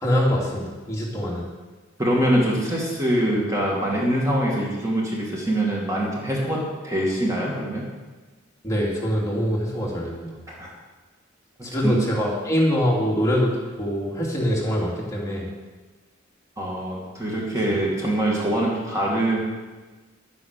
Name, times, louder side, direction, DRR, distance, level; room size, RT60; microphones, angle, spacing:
voice 1, 0.0-1.4 8.6-10.4 11.6-15.5, equal, 15° left, -4 dB, 2.8 m, -24 dB
voice 2, 2.0-7.9 10.6-10.7 11.7-12.0 16.6-19.4, right 1 dB, 15° right, -3 dB, 2.4 m, -24 dB
11.0 x 9.9 x 6.8 m, 1.3 s
head